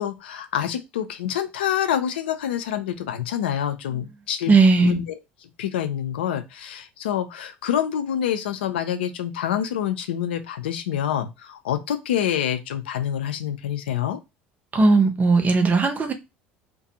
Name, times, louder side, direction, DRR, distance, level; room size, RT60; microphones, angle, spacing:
voice 1, 0.0-14.2, left 10 dB, 80° left, 0.4 m, -27 dB
voice 2, 4.5-5.0 14.7-16.1, right 4 dB, 30° right, 0.7 m, -17 dB
2.4 x 2.2 x 2.7 m
hypercardioid pair, 65°, 6 cm